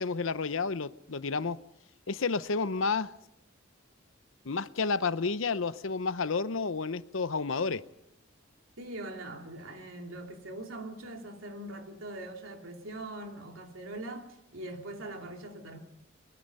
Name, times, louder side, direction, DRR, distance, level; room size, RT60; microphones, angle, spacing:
voice 1, 0.0-1.6 2.1-3.1 4.4-7.8, left 4 dB, 75° left, 15 dB, 0.8 m, -30 dB
voice 2, 8.8-15.8, right 1 dB, 85° right, 3 dB, 3.0 m, -42 dB
22.5 x 22.5 x 5.5 m, 0.80 s
head